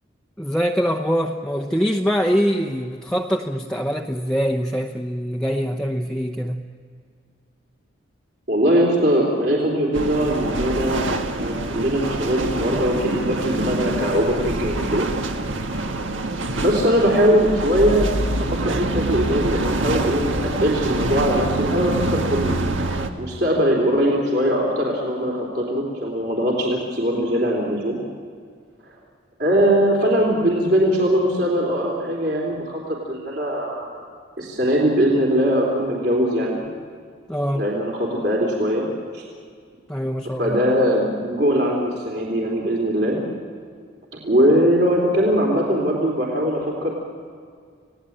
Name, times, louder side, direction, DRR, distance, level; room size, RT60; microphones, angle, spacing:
voice 1, 0.4-6.7 37.3-37.7 39.9-40.6, equal, 5° left, 2 dB, 0.7 m, -23 dB
voice 2, 8.5-11.1 11.4-15.1 16.6-18.1 18.4-22.6 23.2-28.0 29.4-32.8 33.1-34.0 34.4-36.6 37.5-38.9 39.1-39.2 40.4-43.2 44.1-46.9, equal, 55° right, -2 dB, 3.6 m, -21 dB
sound 1, 9.9-23.1, right 2 dB, 85° right, 1.7 m, -25 dB
29.0 x 18.0 x 8.7 m, 2.1 s
head